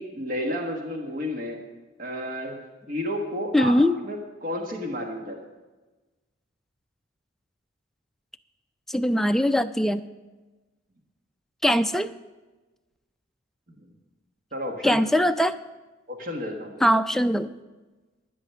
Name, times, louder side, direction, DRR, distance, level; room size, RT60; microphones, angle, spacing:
voice 1, 0.0-1.6 2.0-2.6 2.9-3.8 4.0-5.4 13.8-13.9 14.5-15.1 16.1-16.7, left 1 dB, 45° right, 2 dB, 1.3 m, -31 dB
voice 2, 3.5-4.0 8.9-10.0 11.6-12.1 14.8-15.5 16.8-17.5, equal, ahead, 8 dB, 0.3 m, -21 dB
11.5 x 9.8 x 5.7 m, 1.2 s
head